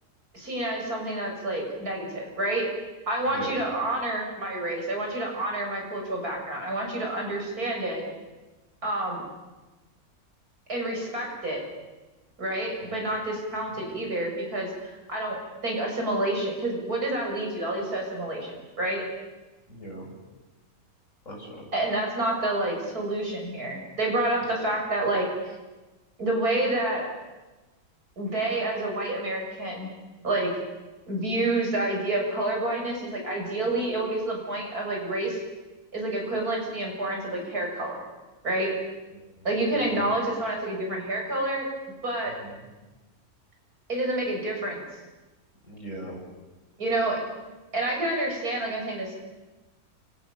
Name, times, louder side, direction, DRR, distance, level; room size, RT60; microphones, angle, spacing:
voice 1, 0.3-2.7 3.1-8.0 8.8-9.2 10.7-11.6 12.4-19.0 21.7-25.3 26.2-27.1 28.2-29.9 30.2-30.5 31.1-35.4 35.9-38.0 38.4-38.7 39.4-41.7 42.0-42.4 43.9-44.8 46.8-47.2 47.7-49.2, right 1 dB, 85° right, 0 dB, 7.6 m, -28 dB
voice 2, 3.3-3.6 12.8-13.1 13.7-13.8 19.7-20.1 21.2-21.7 24.4-24.5 39.4-39.5 39.9-40.0 42.2-42.6 45.6-46.2, right 1 dB, 55° left, -1 dB, 7.9 m, -40 dB
30.0 x 25.0 x 7.1 m, 1.2 s
omnidirectional pair, 1.6 m